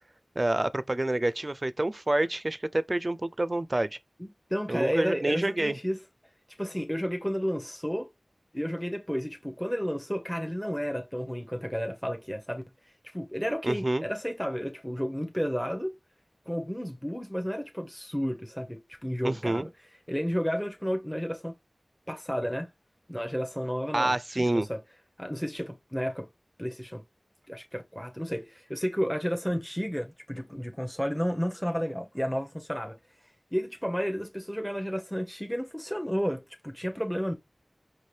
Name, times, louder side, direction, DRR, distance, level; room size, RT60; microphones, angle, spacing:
voice 1, 0.4-4.0 4.7-5.8 13.6-14.0 19.2-19.7 23.9-24.7, right 1 dB, 40° right, 0.4 m, -28 dB
voice 2, 4.2-6.0 6.6-8.1 8.5-12.6 13.0-15.9 16.5-19.7 20.1-21.5 22.1-22.7 23.1-24.8 25.2-26.3 26.6-27.0 27.5-33.0 33.5-37.3, equal, 5° left, 0.7 m, -32 dB
5.8 x 2.8 x 3.2 m
wide cardioid pair, 40°, 0 cm